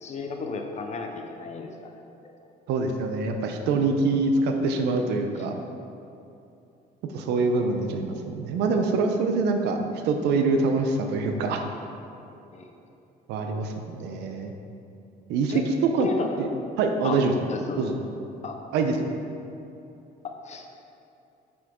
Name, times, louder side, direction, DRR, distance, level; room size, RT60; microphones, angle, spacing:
voice 1, 0.0-2.0 12.5-12.7 15.5-15.6 16.0-16.3 17.0-17.2 17.5-17.9 18.4-18.6 20.2-20.8, left 4 dB, 40° left, 3 dB, 0.7 m, -34 dB
voice 2, 2.7-5.5 7.1-9.8 10.0-11.6 13.3-14.5 15.3-16.1 16.4-16.5 16.8-17.3 17.8-18.0 18.7-19.0, right 3 dB, 85° right, 5 dB, 0.7 m, -25 dB
7.0 x 6.2 x 3.7 m, 2.7 s
cardioid pair, 110°, 17 cm